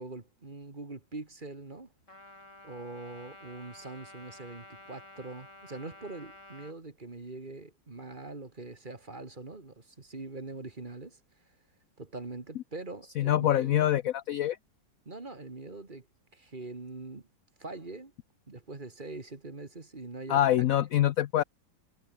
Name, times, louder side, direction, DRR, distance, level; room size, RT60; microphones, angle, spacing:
voice 1, 0.0-1.9 2.6-11.2 12.0-13.9 15.1-16.1 16.3-17.3 17.6-18.1 18.5-20.7, right 3 dB, 25° right, 2.1 m, -43 dB
Trumpet, 2.1-6.8, left 2 dB, 40° left, 7.1 m, -51 dB
voice 2, 13.2-14.6 20.3-21.4, left 12 dB, 70° left, 0.8 m, -25 dB
omnidirectional pair, 2.0 m